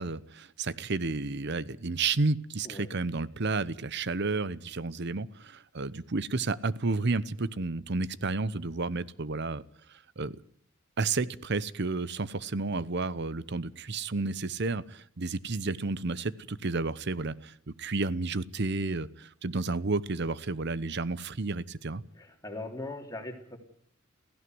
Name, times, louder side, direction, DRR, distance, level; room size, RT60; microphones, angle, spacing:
voice 1, 0.0-9.6 10.2-10.3 11.0-22.0, right 3 dB, 55° right, 18 dB, 0.9 m, -31 dB
voice 2, 22.2-23.6, left 2 dB, 15° left, 3 dB, 3.3 m, -40 dB
17.5 x 16.0 x 9.4 m, 0.63 s
head